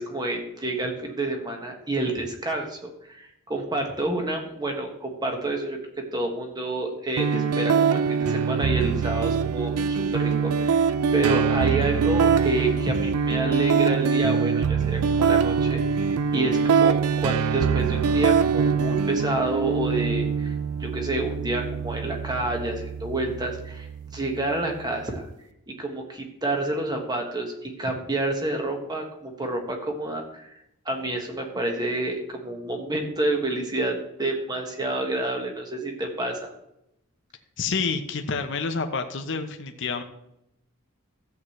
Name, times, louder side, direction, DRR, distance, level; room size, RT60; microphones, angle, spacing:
voice 1, 0.0-5.8 6.1-20.5 20.8-23.9 24.1-25.3 25.8-30.5 30.8-36.5, right 2 dB, 20° right, 2 dB, 1.5 m, -29 dB
sound 1, 7.2-25.1, right 6 dB, 90° right, 0.4 m, -24 dB
voice 2, 37.6-40.0, left 4 dB, 55° left, 6 dB, 0.8 m, -28 dB
13.5 x 8.3 x 3.2 m, 0.82 s
head